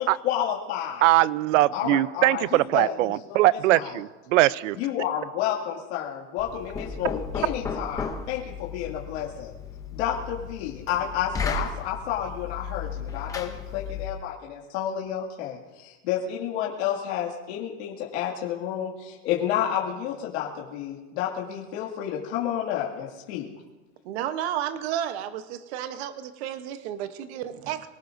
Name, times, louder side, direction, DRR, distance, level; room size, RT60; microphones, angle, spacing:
voice 1, 0.0-1.0 1.7-4.0 4.8-9.5 9.9-23.5, left 10 dB, 60° left, -3 dB, 2.3 m, -30 dB
voice 2, 1.0-4.8, right 16 dB, 85° right, 19 dB, 0.6 m, -21 dB
Knock, 6.4-14.3, left 5 dB, 10° left, 0.6 m, -35 dB
voice 3, 24.0-27.9, right 10 dB, 60° right, 10 dB, 1.0 m, -32 dB
24.0 x 18.5 x 2.6 m, 1.2 s
supercardioid pair, 170°, 37 cm